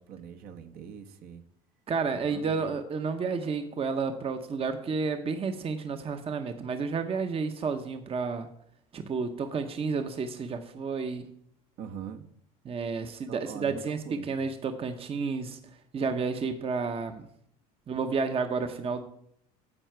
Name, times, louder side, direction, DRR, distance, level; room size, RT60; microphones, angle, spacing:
voice 1, 0.0-1.4 2.1-2.7 11.8-12.2 13.0-14.4, right 8 dB, 55° right, 6 dB, 1.2 m, -43 dB
voice 2, 1.9-8.5 8.9-11.2 12.6-15.6 15.9-17.3 17.9-19.0, right 5 dB, 30° right, 8 dB, 0.9 m, -31 dB
9.9 x 7.2 x 4.6 m, 0.68 s
supercardioid pair, 95°, 18 cm